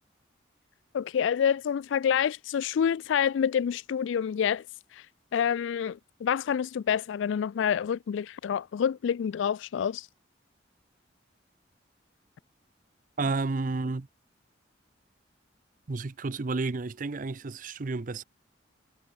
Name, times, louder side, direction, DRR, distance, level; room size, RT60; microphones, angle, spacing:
voice 1, 0.9-4.6 4.9-5.0 5.3-10.1, left 8 dB, 85° left, 0.3 m, -27 dB
voice 2, 13.2-14.1 15.9-18.2, right 3 dB, 45° right, 0.6 m, -31 dB
head